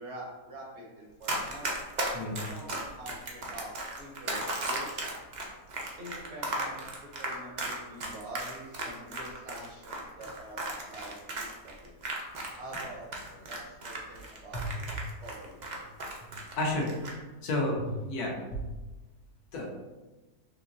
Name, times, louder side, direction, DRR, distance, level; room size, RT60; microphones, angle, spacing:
voice 1, 0.0-1.7 2.4-5.1 6.0-10.6 10.9-12.0 12.6-14.9 15.2-15.8, right 1 dB, 60° right, -2 dB, 0.8 m, -46 dB
Run, 1.2-12.8 13.1-16.5 16.8-17.1, right 2 dB, 75° right, 0.4 m, -35 dB
voice 2, 16.6-16.9 17.4-18.6 19.5-19.7, left 1 dB, 80° left, -1 dB, 1.3 m, -31 dB
4.4 x 2.9 x 2.6 m, 1.2 s
omnidirectional pair, 1.6 m